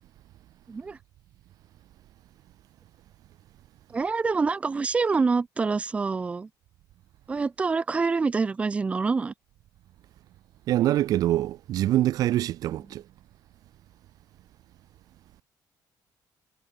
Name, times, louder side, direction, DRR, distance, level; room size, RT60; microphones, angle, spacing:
voice 1, 0.7-1.0 3.9-6.5 7.3-9.3 12.7-12.8, right 4 dB, 15° right, 0.9 m, -26 dB
voice 2, 10.7-13.0, right 13 dB, 55° right, 0.5 m, -24 dB
cardioid pair, 180°, 7 cm